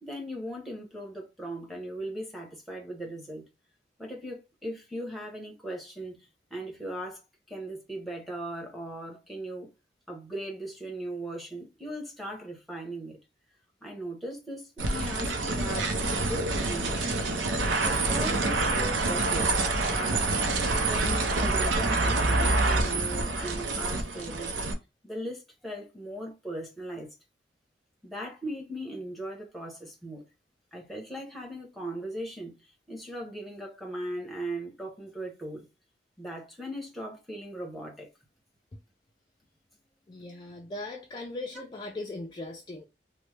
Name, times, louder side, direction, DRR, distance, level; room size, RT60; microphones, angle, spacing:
voice 1, 0.0-3.5 4.0-7.2 7.5-9.7 10.1-13.2 13.8-17.3 17.8-19.5 19.8-20.3 20.8-24.6 25.0-27.1 28.0-30.3 30.7-35.7 36.2-38.1, right 1 dB, ahead, 0.8 m, -38 dB
sound 1, 14.8-24.7, right 2 dB, 85° right, 0.6 m, -27 dB
voice 2, 40.1-42.8, left 2 dB, 25° left, 0.3 m, -39 dB
3.0 x 2.1 x 3.2 m
head